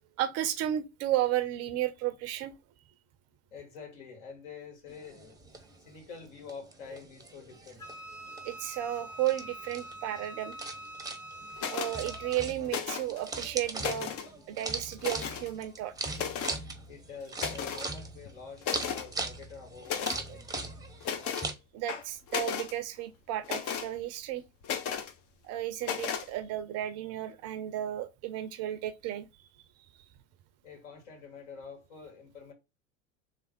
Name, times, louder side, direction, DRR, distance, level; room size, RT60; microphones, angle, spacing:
voice 1, 0.2-2.5 8.4-10.5 11.7-14.1 14.5-15.9 21.7-24.4 25.4-29.3, right 13 dB, 40° right, 0.6 m, -33 dB
voice 2, 3.5-5.4 5.8-7.8 16.9-20.7 30.6-32.5, left 5 dB, 60° left, 2.3 m, -47 dB
sound 1, 4.9-21.5, right 3 dB, 10° right, 0.8 m, -40 dB
Wind instrument woodwind instrument, 7.8-12.4, right 1 dB, 10° left, 1.1 m, -45 dB
sound 2, 11.6-11.9 12.7-13.2 13.6-14.3 15.0-15.5 16.1-16.6 17.4-17.9 18.3-18.4 18.6-19.1 19.8-20.2 21.0-21.5 21.9-22.7 23.4-23.9 24.6-25.1 25.8-26.3, left 8 dB, 35° left, 0.8 m, -34 dB
3.5 x 3.4 x 4.2 m
figure-of-eight pair, 80°, 39 cm